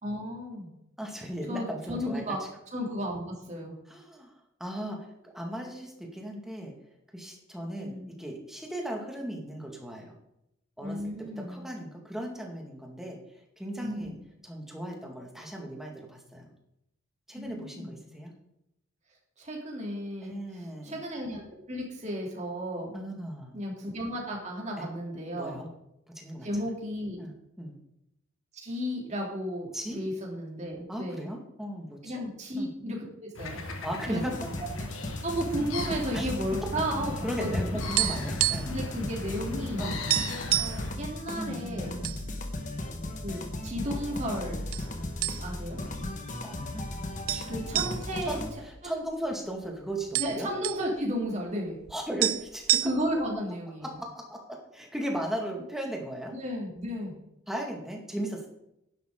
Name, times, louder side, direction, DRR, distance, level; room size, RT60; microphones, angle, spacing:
voice 1, 0.0-0.7 1.5-2.4 2.7-3.8 7.8-8.1 10.8-11.6 13.8-14.2 17.3-18.0 19.4-21.4 21.7-23.0 23.5-25.6 26.4-27.3 28.6-31.3 32.0-33.6 34.1-34.2 34.8-37.8 38.6-39.9 40.6-41.9 43.2-44.7 45.4-45.8 47.5-48.4 48.8-49.0 50.2-51.8 52.8-54.0 56.3-57.2, equal, 35° right, -1 dB, 3.3 m, -34 dB
voice 2, 1.0-2.4 3.9-4.3 4.6-6.7 7.1-10.1 10.8-13.2 13.6-14.1 14.4-16.5 17.3-18.3 20.2-21.0 22.9-23.6 24.8-24.9 25.3-25.7 26.2-26.5 27.2-27.8 29.7-30.0 30.9-32.2 32.6-32.7 33.8-34.3 36.1-36.3 37.2-38.8 39.8-40.2 41.4-42.2 46.4-46.8 47.3-47.8 48.3-48.4 48.6-50.5 51.9-52.8 53.8-56.3 57.5-58.5, right 1 dB, ahead, 0 dB, 2.1 m, -37 dB
sound 1, 33.3-41.0, left 2 dB, 85° left, 1.8 m, -37 dB
sound 2, 34.3-48.5, left 1 dB, 40° left, 1.5 m, -36 dB
sound 3, 38.0-38.9 39.1-39.3 39.7-39.8 40.1-40.8 41.5-42.2 42.6-42.7 43.4-44.0 44.7-44.9 45.2-45.7 46.1-46.2 47.3-49.3 49.6-49.7 49.9-50.9 51.9-52.0 52.2-53.3, right 15 dB, 85° right, 0.4 m, -28 dB
11.5 x 11.0 x 3.9 m, 0.82 s
head